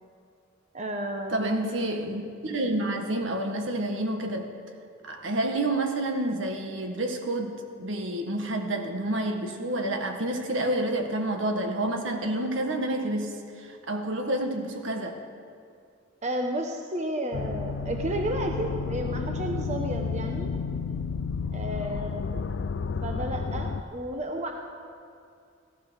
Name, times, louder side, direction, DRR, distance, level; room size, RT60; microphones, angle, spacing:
voice 1, 0.7-1.5 16.2-20.5 21.5-22.2 23.0-24.5, right 1 dB, 35° right, 3 dB, 1.1 m, -32 dB
voice 2, 1.3-4.5 5.0-15.2, right 1 dB, 70° right, 4 dB, 1.8 m, -29 dB
sound 1, 17.3-23.8, left 5 dB, 60° left, 0.4 m, -31 dB
16.0 x 14.0 x 6.5 m, 2.4 s
head